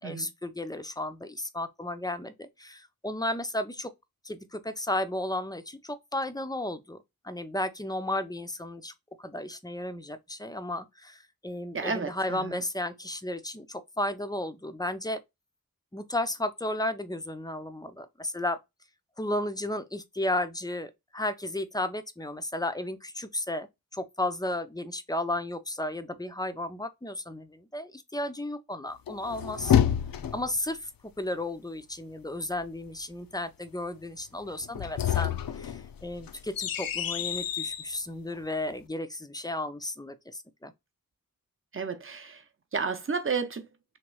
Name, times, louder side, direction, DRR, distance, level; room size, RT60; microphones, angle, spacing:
voice 1, 0.0-3.9 4.2-7.0 7.2-8.9 9.2-15.2 15.9-18.6 19.2-23.7 23.9-29.8 30.3-30.9 31.2-40.7, left 1 dB, 10° left, 0.5 m, -33 dB
voice 2, 11.7-12.6 41.7-42.4 42.7-43.6, right 5 dB, 40° right, 0.7 m, -32 dB
sound 1, 29.1-30.6 34.6-37.9, left 10 dB, 75° left, 0.5 m, -28 dB
3.1 x 3.0 x 4.6 m
wide cardioid pair, 100°, 34 cm